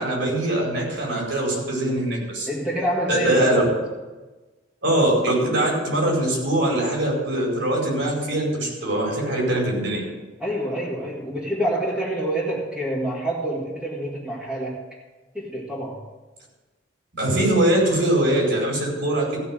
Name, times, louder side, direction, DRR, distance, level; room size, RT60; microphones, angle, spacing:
voice 1, 0.0-2.5 3.1-3.6 4.8-10.0 17.1-19.4, right 1 dB, 65° right, -1 dB, 4.9 m, -22 dB
voice 2, 2.5-3.8 10.4-14.8 15.3-16.0, equal, 5° right, -8 dB, 2.2 m, -27 dB
15.5 x 6.2 x 7.7 m, 1.2 s
head